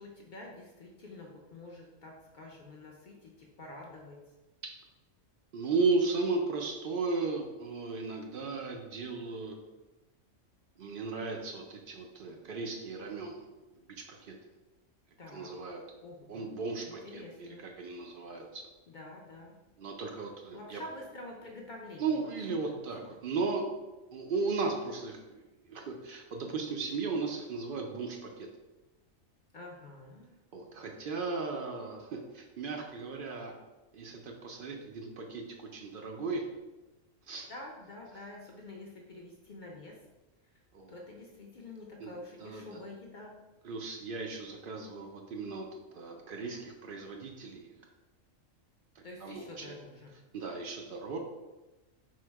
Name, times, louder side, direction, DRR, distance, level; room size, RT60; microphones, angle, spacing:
voice 1, 0.0-4.3 15.2-15.5 16.0-16.5 16.9-17.7 18.9-19.6 20.5-22.2 22.7-23.2 29.5-30.3 37.5-40.0 40.9-43.3 49.0-50.1, left 2 dB, 60° left, -1 dB, 0.5 m, -47 dB
voice 2, 5.5-9.6 10.8-13.4 13.8-14.4 15.3-15.8 16.3-18.6 19.8-20.8 22.0-23.6 24.1-28.5 30.5-33.5 33.9-36.4 37.3-37.5 40.7-40.9 42.0-42.8 43.6-45.7 45.9-47.7 49.0-49.8 50.3-51.2, right 4 dB, 65° right, 2 dB, 0.5 m, -36 dB
4.5 x 2.1 x 4.5 m, 1.1 s
omnidirectional pair, 1.4 m